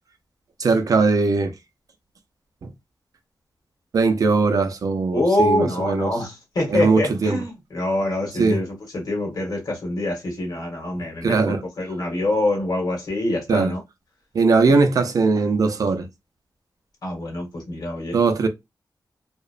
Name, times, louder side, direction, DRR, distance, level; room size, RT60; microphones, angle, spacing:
voice 1, 0.6-1.5 2.6-2.7 3.9-6.2 6.7-7.4 8.3-8.6 11.2-11.6 13.5-13.8 14.3-16.1 18.1-18.5, right 4 dB, 55° right, 0.4 m, -20 dB
voice 2, 5.1-8.7 8.9-13.8 17.0-18.2, left 1 dB, 65° left, 1.2 m, -25 dB
2.9 x 2.0 x 2.4 m
wide cardioid pair, 140°, 7 cm